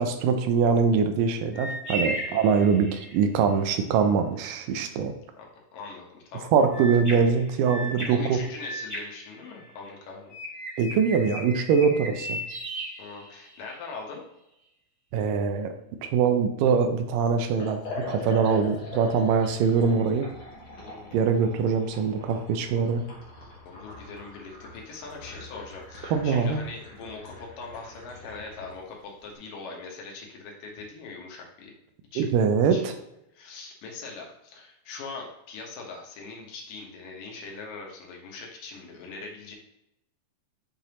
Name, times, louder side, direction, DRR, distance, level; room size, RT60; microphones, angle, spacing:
voice 1, 0.0-5.1 6.5-8.4 10.8-12.4 15.1-15.7 16.0-20.3 21.1-23.0 26.1-26.6 32.2-32.9, right 6 dB, 90° right, 7 dB, 2.4 m, -23 dB
sound 1, 1.5-3.2 6.7-9.9 10.3-13.7, right 1 dB, 10° right, 1.4 m, -36 dB
voice 2, 5.4-6.9 8.0-10.3 13.0-14.2 20.7-21.2 23.7-31.7 32.1-32.3 32.7-32.9 33.3-39.6, left 4 dB, 80° left, 0 dB, 2.9 m, -41 dB
Liquid, 17.5-28.8, left 3 dB, 45° left, 2.1 m, -42 dB
8.1 x 5.1 x 3.0 m, 0.84 s
omnidirectional pair, 3.8 m